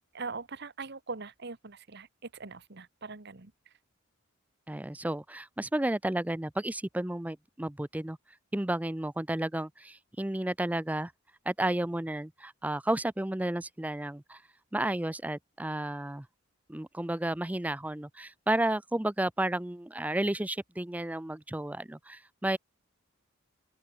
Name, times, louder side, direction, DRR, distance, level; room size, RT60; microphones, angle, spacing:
voice 1, 0.1-3.5, right 4 dB, 55° right, 1.4 m, -41 dB
voice 2, 4.7-8.2 8.5-11.1 11.5-14.4 14.7-16.3 16.7-22.6, right 1 dB, 5° right, 0.5 m, -32 dB
open air
head